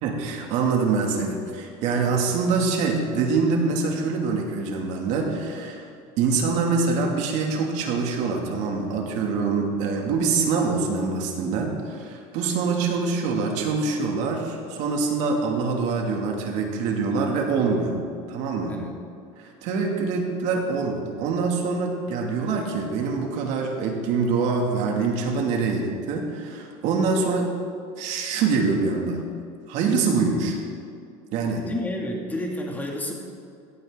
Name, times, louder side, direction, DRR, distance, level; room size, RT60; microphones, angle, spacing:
voice 1, 0.0-5.8 6.2-18.0 18.3-18.8 19.6-27.5 28.0-29.2 29.7-30.6 31.3-31.7, right 4 dB, 60° right, 1 dB, 2.7 m, -25 dB
voice 2, 31.6-33.1, left 1 dB, 10° left, 0 dB, 2.6 m, -30 dB
17.0 x 14.0 x 4.0 m, 2.5 s
cardioid pair, 135°, 14 cm